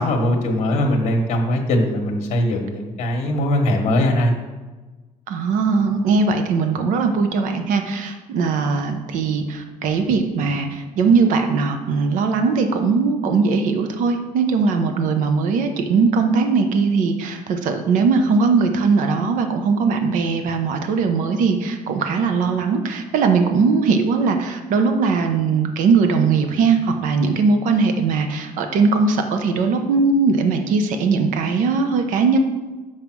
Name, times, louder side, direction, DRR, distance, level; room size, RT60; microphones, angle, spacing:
voice 1, 0.0-4.3, left 1 dB, 55° left, 3 dB, 1.3 m, -20 dB
voice 2, 5.3-32.4, right 4 dB, 75° right, 6 dB, 0.9 m, -19 dB
6.5 x 5.6 x 6.0 m, 1.2 s
cardioid pair, 160°, 14 cm